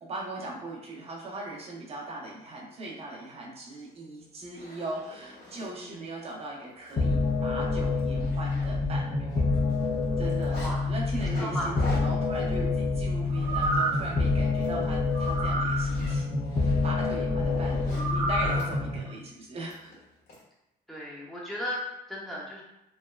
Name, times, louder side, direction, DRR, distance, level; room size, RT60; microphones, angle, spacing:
voice 1, 0.0-9.3 10.2-19.9, right 2 dB, 35° right, -3 dB, 0.7 m, -39 dB
Zipper (clothing), 3.9-4.0 4.4-5.7 6.3-6.5 6.8-6.9 7.3-7.4 7.7-9.1 9.3-10.7 11.2-14.1 14.4-14.7 15.1-18.7 19.7-20.4, left 1 dB, 65° left, 1.4 m, -44 dB
sound 1, 7.0-19.0, left 3 dB, 35° left, 0.5 m, -27 dB
sound 2, 13.3-14.1 15.1-15.8 17.9-18.6 19.1-19.2, right 2 dB, 75° right, 0.8 m, -29 dB
voice 2, 20.9-22.6, left 1 dB, ahead, -6 dB, 0.8 m, -35 dB
3.0 x 2.0 x 2.3 m, 0.89 s
cardioid pair, 110°, 17 cm